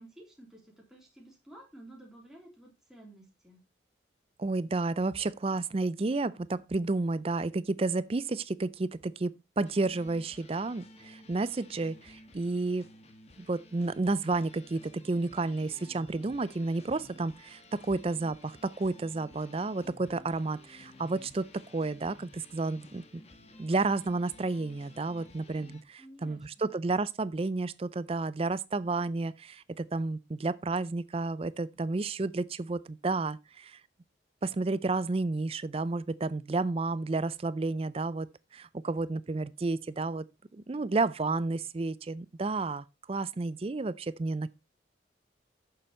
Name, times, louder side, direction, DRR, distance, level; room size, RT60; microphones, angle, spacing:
voice 1, 0.0-3.6 26.0-26.7, right 1 dB, ahead, 3.1 m, -53 dB
voice 2, 4.4-12.9 13.4-23.2 23.6-33.8 34.4-38.3 38.5-40.2 40.5-44.5, right 3 dB, 30° right, 0.4 m, -31 dB
sound 1, 9.6-25.8, left 2 dB, 35° left, 1.2 m, -54 dB
8.8 x 6.8 x 4.3 m
head